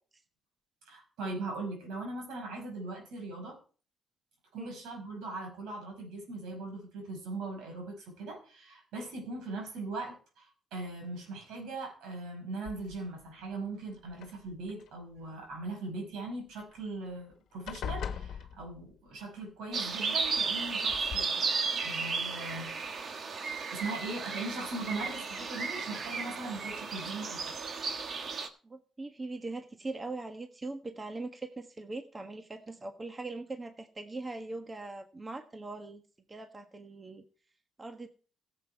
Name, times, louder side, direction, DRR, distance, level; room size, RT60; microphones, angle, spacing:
voice 1, 0.9-3.6 4.5-21.5 21.8-22.8 23.7-27.4, right 2 dB, 85° right, 2 dB, 5.3 m, -40 dB
sound 1, 12.7-13.2 14.1-14.9 16.7-16.8 17.1-17.3 17.7-19.1 20.2-20.3 20.9-21.2, left 8 dB, 70° left, 1.2 m, -40 dB
sound 2, 19.7-28.5, right 5 dB, 50° right, 1.5 m, -34 dB
voice 2, 28.6-36.0 36.3-37.2 37.8-38.1, right 2 dB, 25° right, 6 dB, 1.4 m, -41 dB
16.0 x 7.6 x 4.5 m, 0.39 s
cardioid pair, 90°, 0 cm